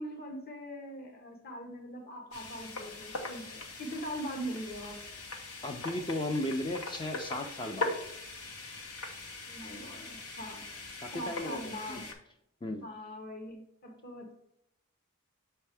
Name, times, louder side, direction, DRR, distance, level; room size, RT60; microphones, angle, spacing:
voice 1, 0.0-5.0 9.4-10.7 11.1-12.1 12.8-14.3, equal, 45° left, 1.0 m, -41 dB
sound 1, 2.3-12.1, left 2 dB, 85° left, 1.0 m, -41 dB
voice 2, 5.6-7.9 11.0-12.0 12.6-12.9, left 1 dB, 20° left, 0.4 m, -35 dB
6.6 x 4.4 x 3.4 m
head